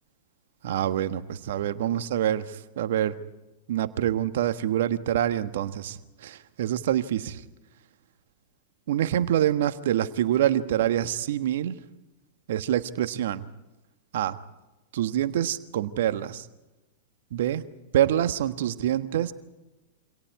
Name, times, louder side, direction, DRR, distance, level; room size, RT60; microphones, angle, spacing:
voice 1, 0.6-3.1 3.7-7.4 8.9-11.7 12.5-13.4 14.1-14.4 14.9-16.5 17.3-17.6 17.9-19.3, right 11 dB, 60° right, 11 dB, 1.4 m, -26 dB
28.0 x 26.0 x 4.8 m, 1.0 s
hypercardioid pair, 105°, 0 cm